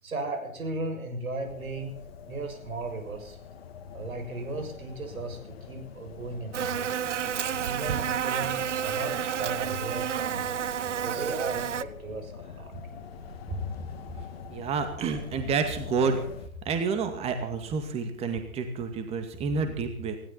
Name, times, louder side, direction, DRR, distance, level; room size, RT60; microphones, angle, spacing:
voice 1, 0.0-2.0 2.2-3.4 3.9-6.9 7.6-10.6 10.9-12.7, right 2 dB, 70° right, 4 dB, 6.7 m, -36 dB
sound 1, 1.4-16.5, left 6 dB, 45° left, 2.2 m, -45 dB
Buzz, 6.5-11.8, right 9 dB, 55° right, 0.9 m, -30 dB
voice 2, 14.5-16.2 16.6-20.2, right 5 dB, 15° right, 7 dB, 2.2 m, -29 dB
19.5 x 17.0 x 4.3 m, 0.63 s
figure-of-eight pair, 135°, 43 cm